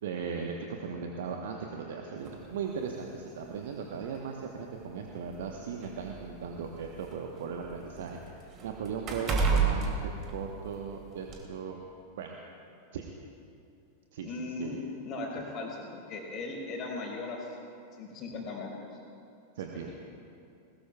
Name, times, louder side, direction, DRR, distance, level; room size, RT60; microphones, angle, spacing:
voice 1, 0.0-8.2 8.6-11.8 12.2-12.4 12.9-13.1 14.1-14.8 19.5-19.9, right 6 dB, 55° right, 1 dB, 1.1 m, -37 dB
sound 1, 2.3-2.4 3.5-3.6 4.0-4.2 5.1-7.1 7.5-10.9 11.3-11.4, right 5 dB, 30° right, 2.7 m, -31 dB
voice 2, 14.2-17.5 18.0-19.0, left 3 dB, 35° left, -1 dB, 4.1 m, -38 dB
21.0 x 20.0 x 2.4 m, 2.5 s
figure-of-eight pair, 90°, 0 cm